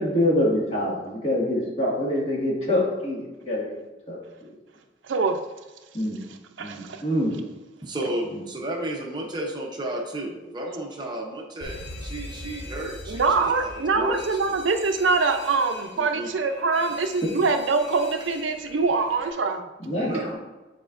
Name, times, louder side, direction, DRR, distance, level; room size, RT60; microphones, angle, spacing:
voice 1, 0.0-3.8 4.1-4.2 5.9-6.2 6.6-7.3 17.2-17.3 19.8-20.3, left 1 dB, 35° left, -5 dB, 2.0 m, -25 dB
voice 2, 5.1-5.4 6.3-7.0 13.1-19.6, right 4 dB, 90° right, 6 dB, 0.5 m, -24 dB
voice 3, 7.8-14.6 16.0-16.3 19.9-20.3, right 1 dB, 25° right, 0 dB, 0.8 m, -32 dB
Alarm, 11.6-19.3, left 2 dB, 65° left, 1.1 m, -41 dB
8.9 x 4.3 x 2.6 m, 1.1 s
head